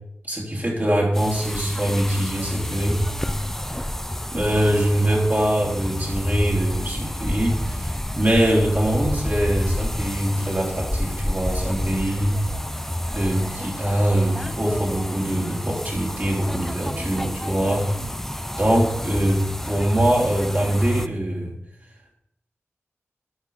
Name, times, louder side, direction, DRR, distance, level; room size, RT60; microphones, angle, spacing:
voice 1, 0.3-3.0 4.3-12.4 13.1-17.9 18.5-21.6, right 1 dB, 35° right, -2 dB, 3.0 m, -23 dB
sound 1, 1.1-21.1, left 1 dB, 5° left, 0.5 m, -30 dB
11.5 x 5.0 x 5.4 m, 0.81 s
cardioid pair, 45°, 5 cm